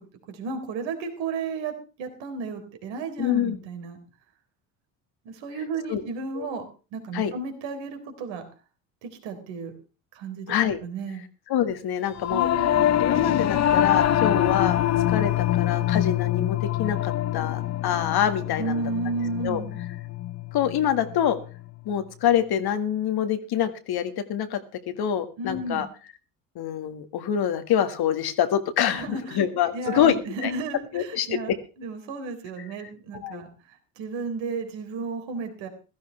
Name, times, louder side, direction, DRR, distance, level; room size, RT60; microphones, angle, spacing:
voice 1, 0.3-1.7 2.0-4.0 5.3-6.7 6.9-8.4 9.0-9.7 10.1-11.2 12.3-13.0 18.6-19.8 25.4-25.9 28.9-29.4 29.7-33.5 34.0-35.7, right 3 dB, 65° right, 6 dB, 3.9 m, -33 dB
voice 2, 3.2-3.6 5.9-6.0 6.4-6.5 7.1-7.3 10.5-10.8 11.5-12.5 13.0-18.8 19.4-19.6 20.5-21.4 21.9-24.6 24.9-25.9 26.6-30.5 30.9-31.4 33.2-33.4, left 9 dB, 50° left, 8 dB, 1.8 m, -26 dB
Singing / Musical instrument, 12.2-21.7, left 12 dB, 35° left, 0.8 m, -25 dB
16.0 x 14.0 x 3.3 m, 0.33 s
hypercardioid pair, 70°, 48 cm